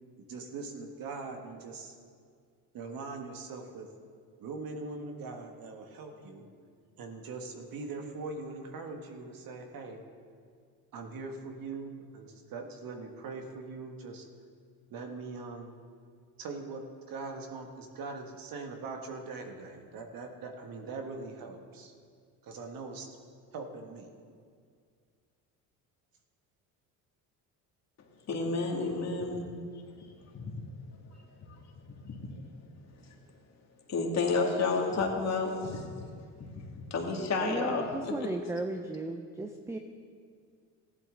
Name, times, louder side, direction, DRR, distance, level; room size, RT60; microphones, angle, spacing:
voice 1, 0.3-2.0 2.7-3.9 4.4-6.5 7.0-10.0 10.9-14.3 14.9-15.7 16.4-21.9 22.4-23.2 23.5-24.1, right 3 dB, 55° right, 4 dB, 1.6 m, -41 dB
voice 2, 28.3-29.4 30.3-30.5 32.0-32.2 33.9-35.9 36.4-38.1, left 3 dB, 40° left, 0 dB, 2.3 m, -31 dB
voice 3, 37.4-39.8, right 2 dB, 5° right, 5 dB, 0.6 m, -35 dB
15.0 x 11.0 x 3.9 m, 2.1 s
supercardioid pair, 90°, 40 cm